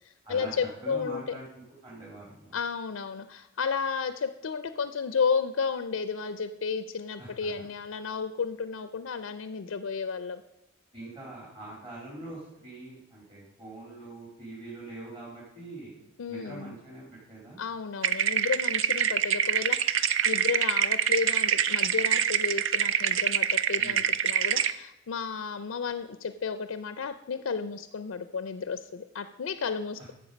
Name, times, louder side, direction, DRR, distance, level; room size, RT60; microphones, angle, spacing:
voice 1, 0.0-1.2 2.5-10.4 16.2-16.7 17.6-30.1, left 5 dB, 85° left, 11 dB, 0.5 m, -32 dB
voice 2, 0.8-2.6 7.2-7.5 10.9-16.0 16.3-17.6 23.8-24.1, right 2 dB, 25° right, -6 dB, 2.9 m, -43 dB
sound 1, 18.0-24.7, right 9 dB, 75° right, 0.5 m, -25 dB
12.0 x 7.3 x 5.2 m, 0.89 s
head